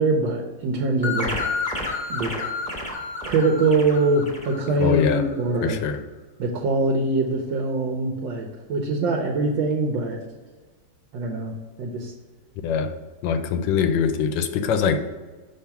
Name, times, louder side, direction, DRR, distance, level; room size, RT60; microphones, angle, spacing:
voice 1, 0.0-1.4 2.1-2.3 3.2-5.8 6.4-10.2 11.1-12.1, right 2 dB, 80° right, 0 dB, 1.5 m, -23 dB
sound 1, 1.0-5.4, left 3 dB, 5° left, 0.9 m, -30 dB
voice 2, 4.8-5.2 5.6-6.0 12.6-12.9 13.2-15.2, left 6 dB, 85° left, 9 dB, 1.3 m, -23 dB
5.7 x 3.4 x 5.7 m, 1.3 s
omnidirectional pair, 2.0 m